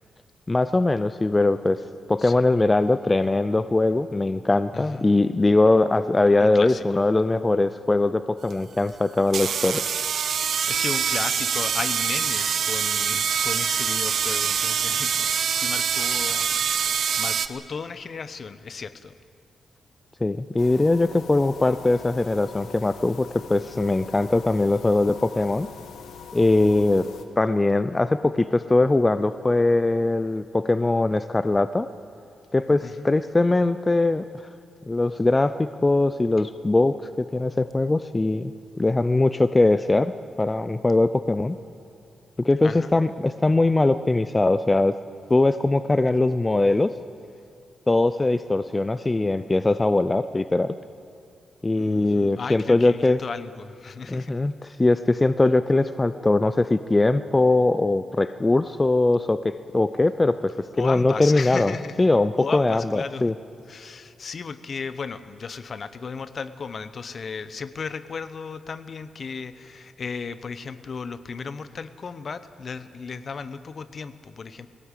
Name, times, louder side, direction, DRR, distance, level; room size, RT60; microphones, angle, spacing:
voice 1, 0.5-1.8 2.1-9.8 20.2-25.7 26.3-27.1 27.4-31.9 32.5-34.3 34.9-38.5 38.8-40.1 40.4-41.6 42.4-44.9 45.3-46.9 47.9-50.8 51.6-53.2 54.1-60.5 60.8-61.7 62.0-63.3, left 2 dB, 20° left, 11 dB, 0.5 m, -21 dB
voice 2, 4.7-5.1 6.4-7.0 10.7-19.1 32.8-33.1 42.6-43.0 51.8-54.4 60.8-62.0 62.4-63.3 63.7-74.7, left 5 dB, 50° left, 12 dB, 0.9 m, -35 dB
sound 1, 8.5-8.6 9.3-17.5, right 7 dB, 65° right, 0.8 m, -25 dB
sound 2, 20.6-27.2, left 7 dB, 90° left, 1.6 m, -43 dB
21.0 x 17.5 x 8.3 m, 2.4 s
cardioid pair, 115°, 0 cm